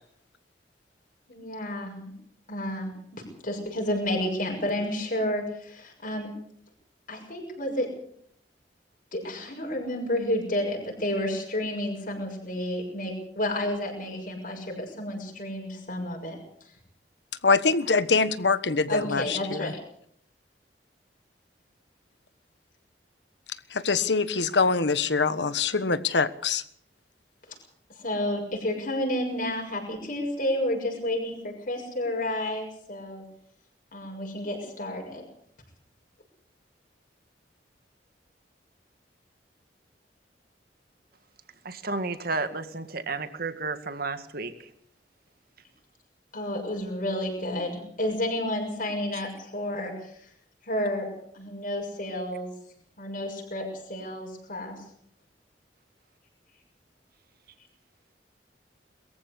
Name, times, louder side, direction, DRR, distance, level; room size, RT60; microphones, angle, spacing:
voice 1, 1.3-2.1 2.5-6.3 7.1-7.9 9.1-16.4 18.9-19.7 28.0-33.2 33.9-35.2 46.3-49.9 50.6-51.1 51.3-52.5 53.0-54.8, left 1 dB, 50° left, 0 dB, 6.7 m, -31 dB
voice 2, 17.4-19.7 23.7-26.6, left 4 dB, 85° left, 13 dB, 1.4 m, -24 dB
voice 3, 41.6-44.5 49.1-49.2, right 3 dB, 60° right, 10 dB, 2.0 m, -32 dB
22.5 x 14.5 x 8.3 m, 0.67 s
head